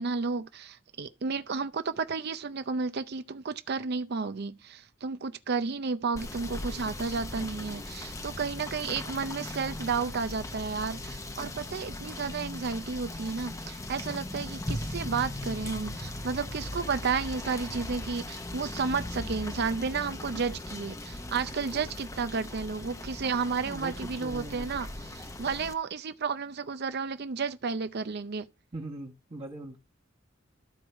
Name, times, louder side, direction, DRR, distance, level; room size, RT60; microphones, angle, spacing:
voice 1, 0.0-24.9 25.1-28.5, right 5 dB, 55° right, 0.6 m, -32 dB
Rain / Motor vehicle (road), 6.1-25.7, left 1 dB, 15° left, 0.8 m, -39 dB
voice 2, 23.6-25.2 28.7-29.8, right 1 dB, 35° right, 1.4 m, -42 dB
13.5 x 4.7 x 4.5 m
head